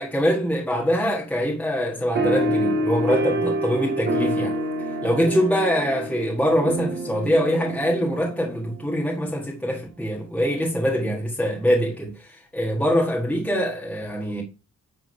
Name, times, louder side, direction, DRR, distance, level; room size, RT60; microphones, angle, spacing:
voice 1, 0.0-4.6 5.0-14.4, equal, 5° left, 1.5 m, -24 dB
sound 1, 2.2-9.0, right 1 dB, 35° right, 1.4 m, -27 dB
9.6 x 3.5 x 5.6 m
wide cardioid pair, 150°, 29 cm